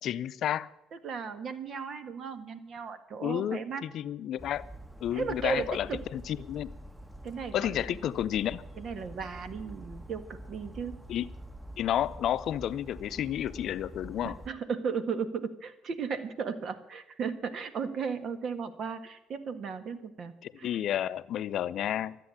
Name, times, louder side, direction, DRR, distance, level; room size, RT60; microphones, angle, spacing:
voice 1, 0.0-0.7 3.2-4.7 5.0-5.9 6.1-6.7 7.5-8.6 11.1-11.3 11.8-14.4 20.4-22.2, left 11 dB, 65° left, 0.5 m, -31 dB
voice 2, 0.9-3.8 5.1-6.0 7.2-8.0 8.8-11.0 14.2-20.8, right 5 dB, 55° right, 1.6 m, -35 dB
Bird vocalization bird call bird song, 4.4-14.5, right 1 dB, 10° right, 1.4 m, -46 dB
13.5 x 8.3 x 9.7 m
hypercardioid pair, 60°, 0 cm